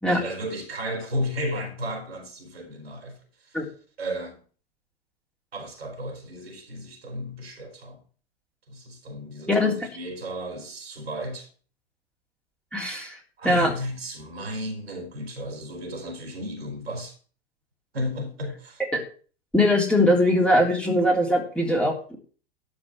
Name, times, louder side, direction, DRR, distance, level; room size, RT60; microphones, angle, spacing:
voice 1, 0.1-3.6 4.0-4.4 5.5-8.0 8.7-11.5 13.4-17.2 17.9-18.8, equal, 75° right, 4.3 m, -34 dB
voice 2, 12.7-13.7 18.9-19.0 19.5-22.2, left 1 dB, 5° left, 3.4 m, -21 dB
12.5 x 5.2 x 8.8 m
figure-of-eight pair, 95°, 31 cm